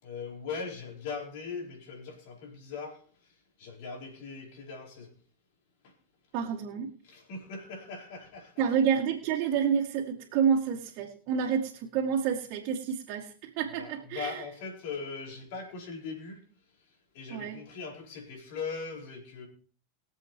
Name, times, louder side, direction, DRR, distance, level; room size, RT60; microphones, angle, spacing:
voice 1, 0.0-3.3 3.6-5.1 5.8-5.9 7.0-8.5 13.8-16.4 17.1-19.5, left 4 dB, 70° left, 0 dB, 4.5 m, -40 dB
voice 2, 6.3-6.9 8.6-14.4 17.3-17.6, right 7 dB, 55° right, -2 dB, 2.2 m, -29 dB
23.0 x 7.7 x 3.1 m, 0.43 s
hypercardioid pair, 110°, 0 cm